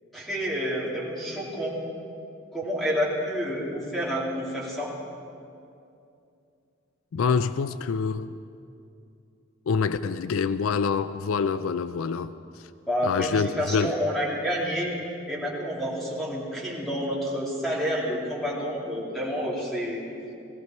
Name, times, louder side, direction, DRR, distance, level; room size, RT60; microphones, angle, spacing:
voice 1, 0.1-1.8 2.5-4.9 12.9-14.9 15.3-20.0, equal, ahead, -6 dB, 3.0 m, -29 dB
voice 2, 7.1-8.3 9.7-12.3 13.0-14.0, left 5 dB, 75° left, 13 dB, 0.4 m, -26 dB
18.0 x 15.5 x 4.5 m, 2.6 s
head